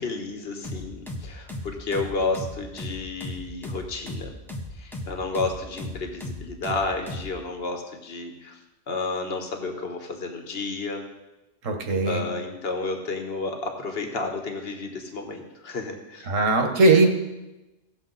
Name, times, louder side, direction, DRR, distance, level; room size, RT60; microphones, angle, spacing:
voice 1, 0.0-4.3 4.8-8.6 8.9-11.0 12.0-16.3, left 3 dB, 50° left, 4 dB, 1.5 m, -31 dB
sound 1, 0.6-7.3, left 1 dB, ahead, 1.0 m, -36 dB
voice 2, 11.6-12.2 16.3-17.1, right 2 dB, 85° right, 4 dB, 1.6 m, -19 dB
17.0 x 7.0 x 4.0 m, 1.0 s
omnidirectional pair, 1.3 m